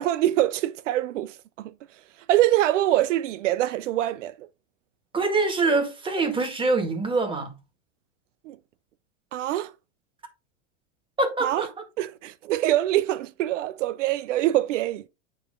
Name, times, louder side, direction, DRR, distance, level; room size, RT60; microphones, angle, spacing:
voice 1, 0.0-2.0 2.3-4.5 8.4-8.6 9.3-9.7 11.4-11.7 12.0-15.1, right 14 dB, 80° right, 0.7 m, -24 dB
voice 2, 5.1-7.5 11.2-11.7, right 3 dB, 15° right, 1.9 m, -24 dB
9.3 x 3.2 x 4.9 m
supercardioid pair, 130°, 36 cm